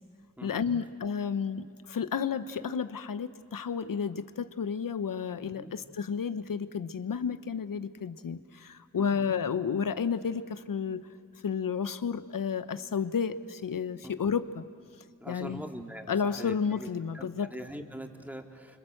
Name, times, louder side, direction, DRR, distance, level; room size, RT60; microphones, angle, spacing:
voice 1, 0.4-11.0 11.4-14.7 15.3-15.6 16.1-17.5, left 6 dB, 85° left, 13 dB, 1.0 m, -31 dB
voice 2, 15.2-18.8, equal, 5° right, 4 dB, 2.7 m, -43 dB
29.5 x 25.5 x 7.8 m, 2.4 s
cardioid pair, 55°, 32 cm